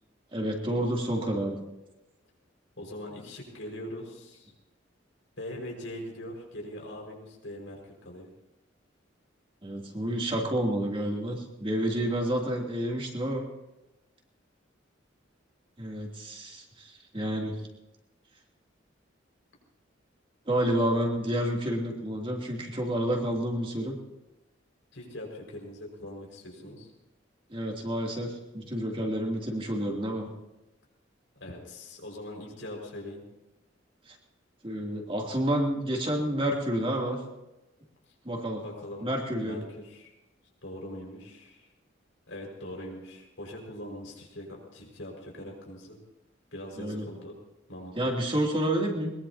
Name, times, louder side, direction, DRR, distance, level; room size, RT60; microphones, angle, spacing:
voice 1, 0.3-1.6 9.6-13.4 15.8-17.6 20.5-24.0 27.5-30.3 34.1-34.2 34.6-37.2 38.2-38.6 39.0-39.6 46.8-47.0 48.0-49.1, right 1 dB, 30° right, -1 dB, 2.9 m, -29 dB
voice 2, 2.8-4.5 5.4-8.3 24.9-26.9 31.4-33.2 38.1-38.2 38.6-39.1 39.4-40.1 40.6-41.7 42.3-46.0 46.5-47.3 47.7-48.2, left 1 dB, 85° left, 0 dB, 5.5 m, -42 dB
22.0 x 21.0 x 2.9 m, 0.99 s
head